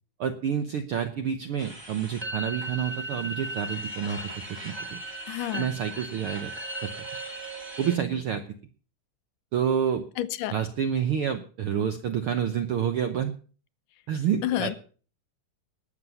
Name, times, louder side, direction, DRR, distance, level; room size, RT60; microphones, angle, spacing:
voice 1, 0.2-4.2 4.5-5.0 5.5-6.5 6.8-7.0 7.8-8.4 9.5-10.1 10.5-13.3 14.1-14.8, right 8 dB, 75° right, 1.3 m, -28 dB
sound 1, 1.6-8.0, right 1 dB, 10° right, 1.3 m, -37 dB
voice 2, 5.3-5.7 10.2-10.6 14.4-14.8, left 14 dB, 80° left, 2.4 m, -29 dB
19.5 x 7.5 x 5.5 m
omnidirectional pair, 3.7 m